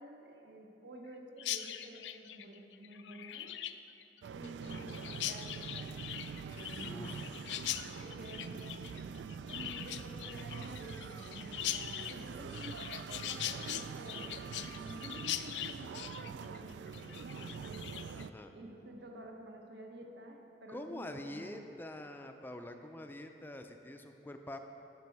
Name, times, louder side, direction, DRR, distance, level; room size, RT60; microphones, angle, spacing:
voice 1, 0.0-3.5 4.3-5.9 6.4-7.1 7.8-8.9 9.5-12.8 13.1-17.7 18.5-21.6, right 1 dB, 65° right, 1 dB, 0.9 m, -50 dB
Chirp tweet, 1.4-18.3, left 12 dB, 85° left, 0.4 m, -42 dB
sound 1, 4.2-18.3, right 5 dB, 90° right, 0.3 m, -45 dB
voice 2, 6.9-7.3 18.1-18.5 20.7-24.6, left 1 dB, 10° left, 6 dB, 0.4 m, -45 dB
11.0 x 6.2 x 4.7 m, 2.9 s
head